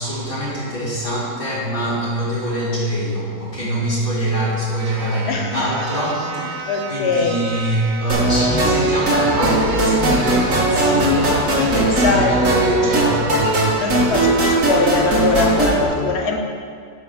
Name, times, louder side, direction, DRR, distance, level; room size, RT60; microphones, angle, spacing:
voice 1, 0.0-13.4, equal, 25° left, -8 dB, 3.1 m, -24 dB
sound 1, 4.3-4.4 4.8-15.1 15.6-15.8, right 6 dB, 80° right, 1.4 m, -31 dB
voice 2, 5.3-6.0 6.4-7.4 12.0-12.4 13.7-16.4, left 4 dB, 45° left, 2 dB, 1.0 m, -22 dB
sound 2, 8.1-15.8, right 1 dB, 45° right, 1.9 m, -18 dB
9.7 x 5.0 x 6.8 m, 2.2 s
omnidirectional pair, 2.1 m